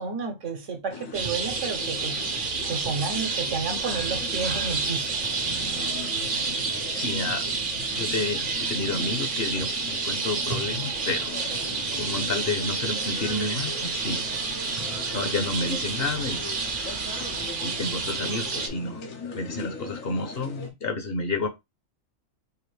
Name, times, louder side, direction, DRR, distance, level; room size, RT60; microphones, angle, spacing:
voice 1, 0.0-2.2 2.5-5.4, right 4 dB, 70° right, 1.2 m, -32 dB
sound 1, 0.9-20.7, left 3 dB, 90° left, 1.4 m, -39 dB
sound 2, 1.1-18.7, right 4 dB, 45° right, 0.8 m, -29 dB
voice 2, 6.9-7.4 7.9-11.3 12.0-14.3 15.1-16.4 17.6-19.0 19.3-21.5, left 3 dB, 55° left, 0.9 m, -30 dB
5.0 x 2.5 x 3.1 m
omnidirectional pair, 1.3 m